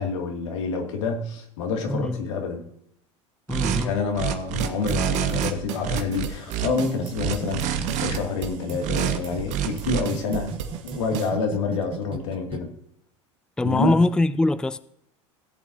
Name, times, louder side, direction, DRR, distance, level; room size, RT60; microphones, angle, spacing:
voice 1, 0.0-2.7 3.8-7.6 8.0-10.5 10.8-12.7 13.6-13.9, left 4 dB, 85° left, 2.3 m, -27 dB
voice 2, 3.5-3.9 13.6-14.8, left 2 dB, 5° left, 0.4 m, -22 dB
sound 1, 3.5-3.8 4.1-5.5 5.8-6.7 7.1-8.2 8.8-9.2 9.5-10.0, right 10 dB, 50° right, 1.3 m, -26 dB
sound 2, 4.6-11.3, right 7 dB, 80° right, 1.3 m, -36 dB
sound 3, 6.8-9.4 9.7-12.6, right 9 dB, 35° right, 1.1 m, -34 dB
17.5 x 8.1 x 2.7 m
hypercardioid pair, 95°, 15 cm